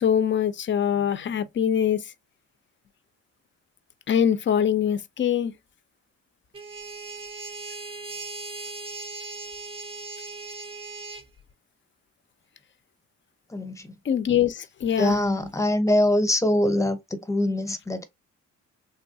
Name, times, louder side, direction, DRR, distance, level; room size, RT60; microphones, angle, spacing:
voice 1, 0.0-2.0 4.1-5.5 14.1-15.2, left 9 dB, 40° left, 0.4 m, -23 dB
sound 1, 6.5-11.2, right 3 dB, 20° right, 0.5 m, -38 dB
voice 2, 13.5-13.9 15.0-18.0, left 1 dB, 10° left, 0.7 m, -23 dB
3.2 x 2.3 x 2.6 m
cardioid pair, 90°, 30 cm